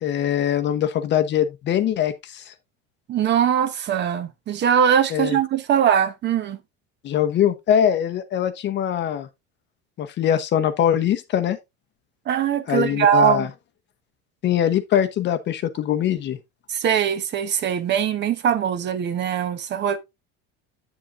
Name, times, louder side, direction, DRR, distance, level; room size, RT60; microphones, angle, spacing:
voice 1, 0.0-2.5 5.1-5.4 7.0-9.3 10.0-11.6 12.7-13.5 14.4-16.4, left 10 dB, 35° left, 0.8 m, -22 dB
voice 2, 3.1-6.6 12.3-13.5 16.7-20.0, right 8 dB, 35° right, 0.8 m, -21 dB
8.3 x 7.6 x 2.4 m
cardioid pair, 145°, 31 cm